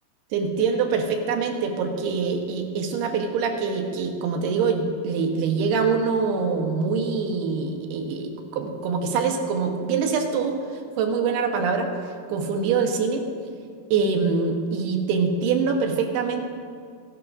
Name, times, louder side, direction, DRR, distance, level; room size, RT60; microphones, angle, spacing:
voice 1, 0.3-10.6 11.0-11.9 12.3-13.2 13.9-16.4, right 5 dB, 85° right, 3 dB, 3.2 m, -24 dB
24.0 x 12.0 x 2.6 m, 2.3 s
omnidirectional pair, 4.5 m